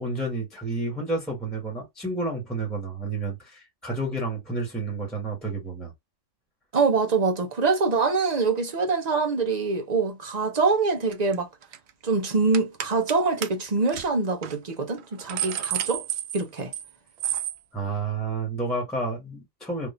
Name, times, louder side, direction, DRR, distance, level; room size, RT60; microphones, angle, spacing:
voice 1, 0.0-5.9 17.7-19.9, right 2 dB, ahead, 1.3 m, -30 dB
voice 2, 6.7-11.5 12.0-16.0 16.3-16.7, right 4 dB, 40° right, 0.8 m, -24 dB
sound 1, 11.1-11.3 11.6-11.9 12.5-13.2 13.4-13.5 13.9-14.0 14.4-14.6 15.0-16.9 17.2-17.6, right 10 dB, 65° right, 0.8 m, -30 dB
3.6 x 2.5 x 2.6 m
omnidirectional pair, 1.3 m